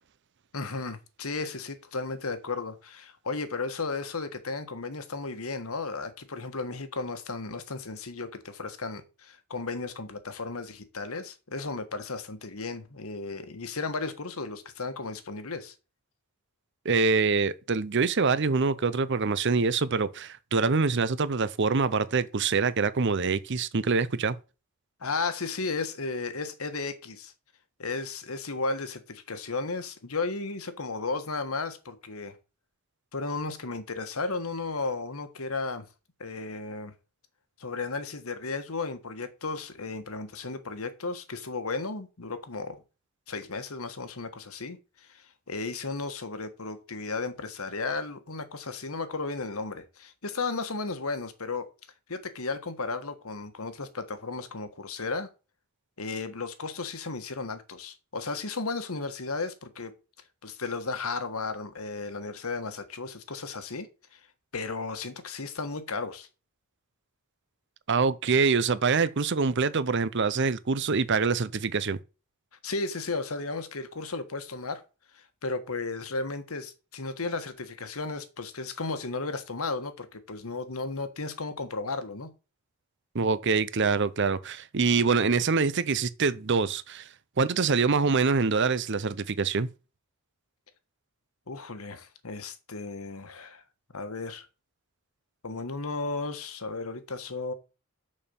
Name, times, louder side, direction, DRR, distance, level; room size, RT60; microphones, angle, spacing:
voice 1, 0.5-15.7 25.0-27.3 27.8-32.4 33.1-35.9 36.2-36.9 37.6-42.8 43.3-51.7 52.1-55.3 56.0-59.9 60.4-64.2 64.5-66.3 72.6-74.8 75.1-82.3 91.5-93.6 93.9-94.5 95.4-97.5, left 3 dB, 75° left, 1.4 m, -34 dB
voice 2, 16.8-24.4 67.9-72.0 83.1-87.1 87.4-89.7, right 4 dB, 55° right, 0.7 m, -25 dB
6.7 x 5.4 x 7.0 m
head